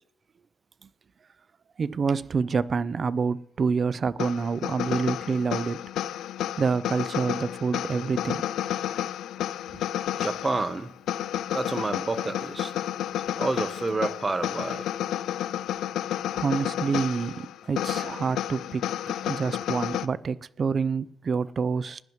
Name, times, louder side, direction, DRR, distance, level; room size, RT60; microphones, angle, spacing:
voice 1, 1.8-5.8 6.6-8.4 9.7-9.8 16.3-18.8 19.2-22.0, right 5 dB, 45° right, 0.4 m, -27 dB
sound 1, 4.2-20.1, left 11 dB, 75° left, 0.4 m, -31 dB
voice 2, 10.2-10.9 11.5-12.7 13.4-14.9, right 3 dB, 25° right, 0.9 m, -29 dB
20.5 x 10.5 x 3.1 m
cardioid pair, 90°, 0 cm